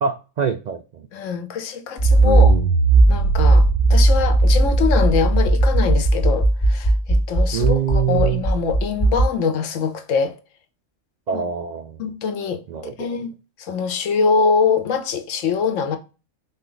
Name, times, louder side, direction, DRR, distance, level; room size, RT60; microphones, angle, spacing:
voice 1, 0.0-1.1 2.2-2.7 7.5-8.4 11.3-12.0 12.7-13.1, right 7 dB, 75° right, 0.4 m, -24 dB
voice 2, 1.1-2.5 3.1-10.3 11.3-11.4 12.0-12.6 13.0-13.3 13.6-16.0, left 5 dB, 80° left, 1.1 m, -23 dB
Accelerating revving vroom, 2.0-9.3, right 2 dB, ahead, 1.7 m, -16 dB
4.4 x 2.9 x 3.8 m
omnidirectional pair, 1.3 m